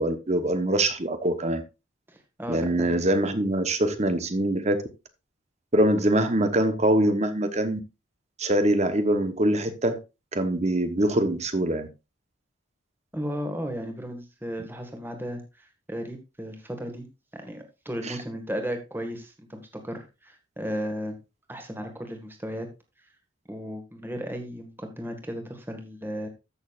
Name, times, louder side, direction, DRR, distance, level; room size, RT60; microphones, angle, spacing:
voice 1, 0.0-1.6 2.5-4.8 5.7-7.8 8.4-10.0 10.3-11.9 18.1-18.2, right 1 dB, 35° right, 1.1 m, -23 dB
voice 2, 2.1-3.0 13.1-17.1 17.3-21.2 21.5-22.7 23.5-26.3, equal, 10° right, 1.6 m, -35 dB
14.0 x 6.5 x 2.5 m
head